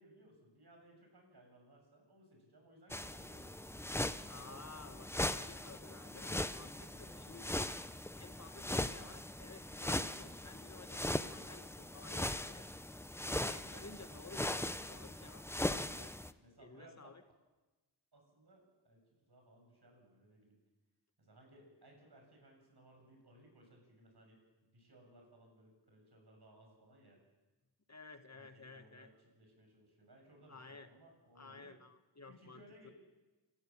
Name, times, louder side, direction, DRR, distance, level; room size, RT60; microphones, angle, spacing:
voice 1, 0.0-4.0 6.1-6.3 7.0-7.4 16.4-17.2 18.1-20.6 21.2-27.2 28.3-31.8 32.3-32.9, right 1 dB, 60° right, 2 dB, 7.4 m, -62 dB
sound 1, 2.9-16.3, left 1 dB, 5° left, 0.7 m, -40 dB
voice 2, 4.2-7.7 8.2-12.7 13.2-16.1 16.6-17.2 27.9-29.1 30.5-30.9 31.3-32.9, left 3 dB, 40° left, 8 dB, 1.3 m, -54 dB
29.0 x 14.0 x 7.3 m, 1.2 s
wide cardioid pair, 85°, 44 cm